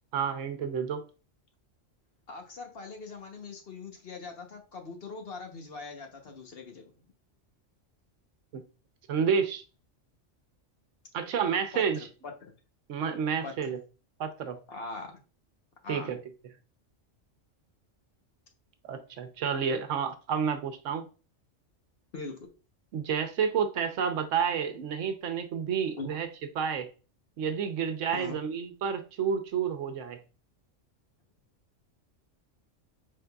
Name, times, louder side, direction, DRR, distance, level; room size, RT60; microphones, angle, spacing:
voice 1, 0.1-1.0 8.5-8.6 9.1-9.6 11.1-12.1 12.9-13.8 14.2-14.6 15.9-16.2 18.8-21.0 22.9-26.3 26.6-26.9 27.4-30.2, right 7 dB, 75° right, 1.0 m, -30 dB
voice 2, 2.3-6.8 11.7-12.5 13.4-13.7 14.7-15.2 15.8-16.1 22.1-22.5 26.0-26.1 28.1-28.4, left 3 dB, 55° left, 1.1 m, -42 dB
5.2 x 3.7 x 2.3 m
omnidirectional pair, 1.3 m